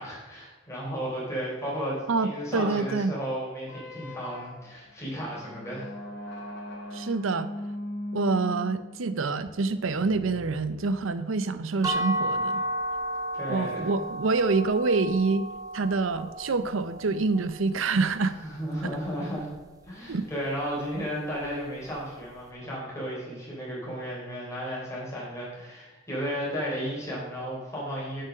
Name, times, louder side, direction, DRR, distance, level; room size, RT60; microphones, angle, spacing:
voice 1, 0.0-5.9 13.3-13.9 18.4-19.5 19.8-28.2, equal, 15° left, -5 dB, 3.7 m, -34 dB
voice 2, 2.1-3.1 6.9-7.5 8.1-12.6 13.5-15.5 15.7-18.4 18.8-19.0 20.1-20.3, right 4 dB, 75° right, 13 dB, 0.6 m, -26 dB
sound 1, 3.6-11.4, left 1 dB, 60° left, 2.3 m, -39 dB
sound 2, 11.8-17.6, equal, 20° right, 1.0 m, -33 dB
7.7 x 6.6 x 6.2 m, 1.1 s
head